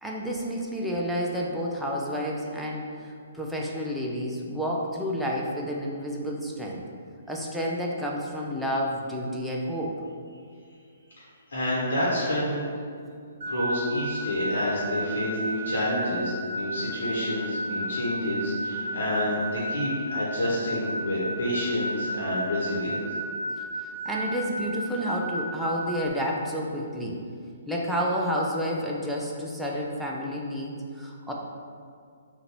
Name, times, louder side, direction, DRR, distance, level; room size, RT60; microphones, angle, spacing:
voice 1, 0.0-6.8 7.3-10.0 23.8-27.2 27.7-31.3, equal, 5° right, -3 dB, 0.5 m, -30 dB
voice 2, 11.5-12.7 13.4-23.0, left 1 dB, 70° left, -7 dB, 1.2 m, -28 dB
sound 1, 13.4-26.1, right 1 dB, 55° right, 0.6 m, -33 dB
3.9 x 2.6 x 4.4 m, 2.3 s
figure-of-eight pair, 130°, 0 cm